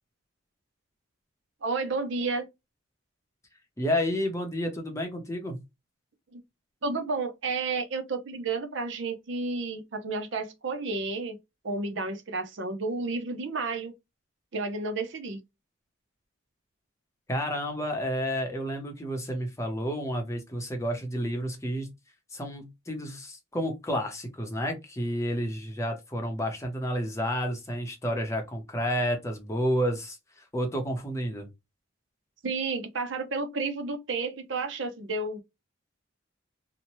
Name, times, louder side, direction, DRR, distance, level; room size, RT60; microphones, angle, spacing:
voice 1, 1.6-2.4 6.3-6.4 6.8-11.4 11.6-13.9 14.5-15.4 32.4-35.4, right 3 dB, 65° right, 0.6 m, -31 dB
voice 2, 3.8-5.6 17.3-21.9 22.3-31.5, equal, 15° left, 0.7 m, -30 dB
2.8 x 2.1 x 2.9 m
head